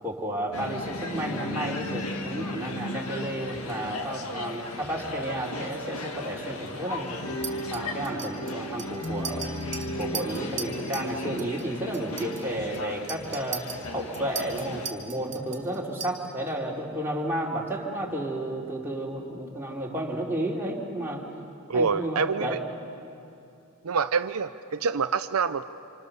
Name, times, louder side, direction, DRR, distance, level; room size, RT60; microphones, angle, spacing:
voice 1, 0.0-7.2 7.7-9.5 10.0-13.7 13.9-21.2 21.7-22.6, right 1 dB, 10° right, -4 dB, 3.2 m, -32 dB
sound 1, 0.5-14.9, left 1 dB, 75° left, 1.7 m, -35 dB
Chink clink, 7.4-11.1 11.4-11.7 11.9-16.5, right 6 dB, 35° right, 2.6 m, -38 dB
voice 2, 21.7-22.6 23.8-25.6, right 5 dB, 75° right, 9 dB, 0.6 m, -26 dB
29.0 x 26.5 x 6.9 m, 2.7 s
head